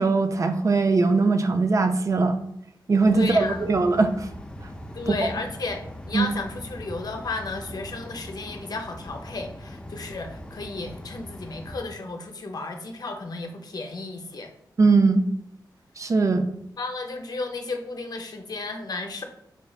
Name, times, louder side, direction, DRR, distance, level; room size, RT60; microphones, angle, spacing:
voice 1, 0.0-2.4 2.9-4.3 5.1-5.2 6.1-6.3 14.8-15.2 16.0-16.5, right 3 dB, 45° right, 8 dB, 0.4 m, -20 dB
sound 1, 3.0-11.8, left 1 dB, 10° left, 0.5 m, -41 dB
voice 2, 3.1-3.7 4.9-5.8 6.1-14.5 16.8-19.2, left 3 dB, 60° left, 4 dB, 0.6 m, -33 dB
5.1 x 3.1 x 2.3 m, 0.74 s
cardioid pair, 70°, 8 cm